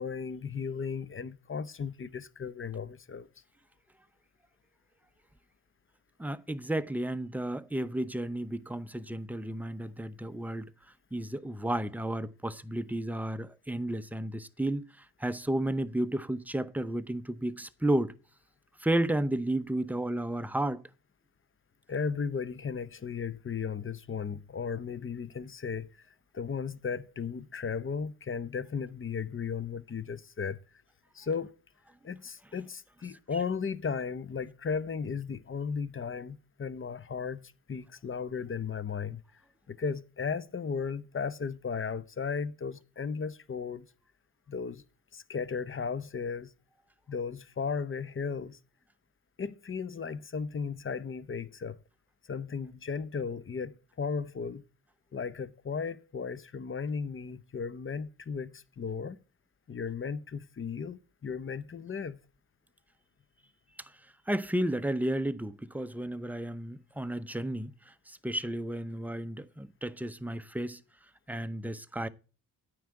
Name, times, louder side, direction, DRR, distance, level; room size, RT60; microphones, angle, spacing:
voice 1, 0.0-3.3 21.9-26.1 26.3-30.6 31.1-31.5 32.0-39.4 39.7-43.9 44.5-44.8 45.1-46.5 47.1-48.6 49.4-51.8 52.3-54.6 55.1-59.2 59.7-62.2, left 6 dB, 30° left, 0.8 m, -35 dB
voice 2, 6.2-10.7 11.1-14.9 15.2-18.1 18.8-20.8 64.3-67.7 68.1-70.8 71.3-72.1, right 1 dB, 5° right, 0.7 m, -32 dB
9.2 x 4.8 x 7.6 m
supercardioid pair, 50°, 40 cm